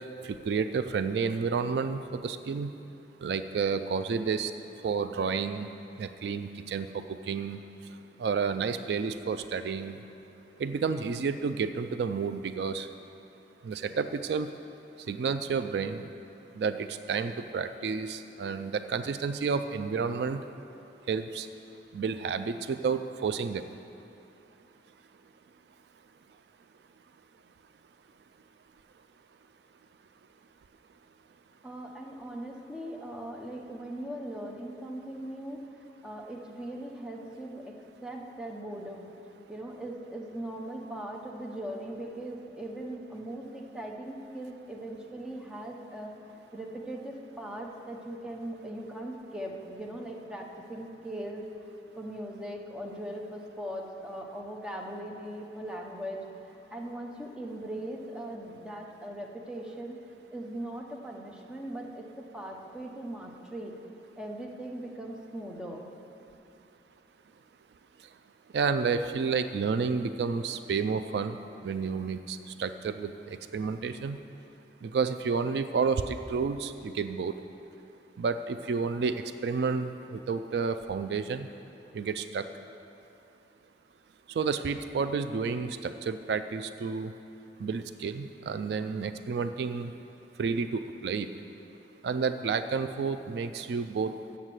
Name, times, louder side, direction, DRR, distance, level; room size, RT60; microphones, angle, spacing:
voice 1, 0.2-2.7 3.2-4.5 4.8-5.7 6.0-7.6 8.2-10.0 10.6-12.9 13.6-14.5 15.1-16.0 16.6-20.4 21.1-21.5 21.9-23.6 68.5-71.4 71.6-74.2 74.8-77.3 78.2-81.5 81.9-82.4 84.4-87.1 87.6-89.9 90.4-91.3 92.0-94.1, right 5 dB, 65° right, 10 dB, 0.3 m, -30 dB
voice 2, 31.6-35.8 36.0-37.8 38.0-39.1 39.5-60.0 60.3-63.8 64.2-65.9, right 1 dB, 5° right, 0 dB, 0.8 m, -40 dB
8.0 x 7.2 x 7.6 m, 2.9 s
head